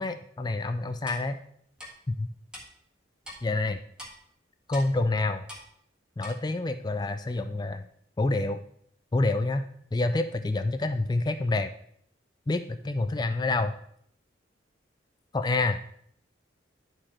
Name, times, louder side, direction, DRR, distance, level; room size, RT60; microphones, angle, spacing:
voice 1, 0.0-1.4 2.1-2.3 3.4-3.8 4.7-5.4 6.2-7.8 8.2-8.6 9.1-9.7 9.9-11.7 12.5-13.7 15.3-15.8, left 2 dB, 20° left, 9 dB, 0.3 m, -27 dB
Clock, 1.1-1.2 1.8-1.9 2.5-2.6 3.2-3.4 4.0-4.1 4.7-4.9 5.5-5.6 6.2-6.3, equal, 5° right, 1.6 m, -42 dB
11.0 x 4.9 x 4.3 m, 0.67 s
head